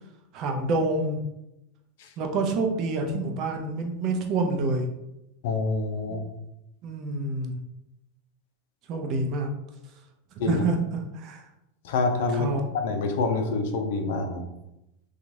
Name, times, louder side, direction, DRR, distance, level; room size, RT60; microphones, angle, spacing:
voice 1, 0.3-1.2 2.2-4.9 6.1-6.2 6.8-7.6 8.9-9.5 10.4-11.5 12.3-12.7, right 2 dB, 50° right, 3 dB, 0.5 m, -27 dB
voice 2, 5.4-6.2 10.4-10.6 11.8-12.5 12.7-14.5, left 3 dB, 70° left, 5 dB, 0.5 m, -26 dB
2.9 x 2.4 x 2.6 m, 0.88 s
hypercardioid pair, 100°, 0 cm